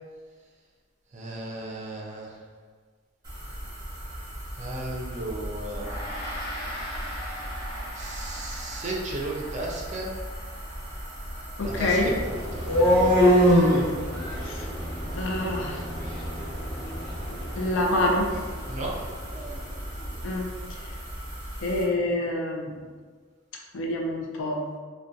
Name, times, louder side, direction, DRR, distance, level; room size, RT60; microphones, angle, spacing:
voice 1, 1.1-2.4 4.6-6.1 7.9-10.1 11.6-12.7 18.7-19.0, right 2 dB, 35° right, -3 dB, 0.4 m, -35 dB
sound 1, 3.2-21.8, equal, 20° right, 1.0 m, -38 dB
Gong, 5.7-15.3, equal, 50° left, 0.8 m, -41 dB
voice 2, 11.6-12.1 14.4-14.7 15.2-15.8 17.6-18.3 20.2-20.5 21.6-22.8 23.7-24.7, left 1 dB, 70° left, 0 dB, 0.4 m, -26 dB
sound 2, 11.6-19.6, equal, 10° left, 0.7 m, -25 dB
2.4 x 2.2 x 2.6 m, 1.5 s
head